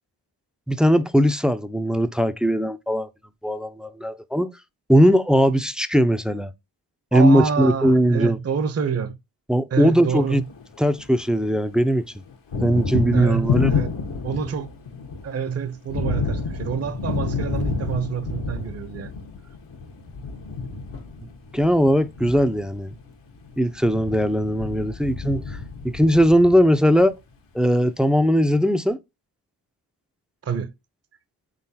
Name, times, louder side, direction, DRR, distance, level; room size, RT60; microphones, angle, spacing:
voice 1, 0.7-3.1 3.4-4.5 4.9-6.5 7.1-8.4 9.5-10.4 10.8-12.0 12.6-13.7 21.5-22.9 23.6-25.6 25.8-27.2 27.5-29.0, equal, ahead, 0.4 m, -19 dB
voice 2, 7.1-9.1 9.7-10.4 13.1-13.9 14.2-14.7 15.2-19.1 30.4-30.7, right 7 dB, 35° right, 0.7 m, -27 dB
Thunder, 10.3-11.5 11.7-27.0, left 4 dB, 75° left, 1.4 m, -29 dB
3.8 x 3.8 x 2.7 m
cardioid pair, 45°, 43 cm